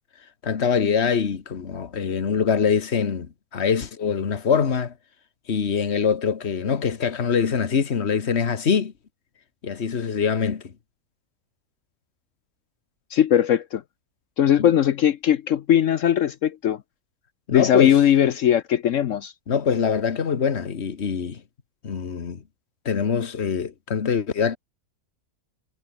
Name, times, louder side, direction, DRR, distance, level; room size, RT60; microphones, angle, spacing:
voice 1, 0.4-4.9 5.5-8.9 9.6-10.6 17.5-18.0 19.5-21.4 21.8-22.4 22.9-24.6, left 6 dB, 50° left, 1.7 m, -24 dB
voice 2, 13.1-13.8 14.4-16.8 17.5-19.3, left 10 dB, 65° left, 1.0 m, -19 dB
omnidirectional pair, 1.6 m